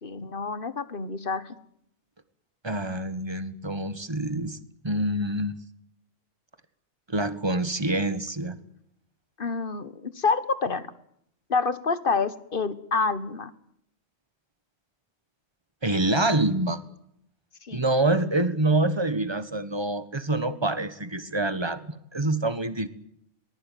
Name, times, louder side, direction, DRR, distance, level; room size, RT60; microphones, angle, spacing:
voice 1, 0.0-1.5 9.4-10.8 11.5-13.5 17.6-17.8, left 4 dB, 45° left, 14 dB, 1.6 m, -28 dB
voice 2, 2.6-4.6 4.8-5.6 7.1-8.6 15.8-16.8 17.7-22.9, right 2 dB, 20° right, 13 dB, 1.6 m, -26 dB
23.0 x 20.0 x 9.3 m, 0.72 s
omnidirectional pair, 1.3 m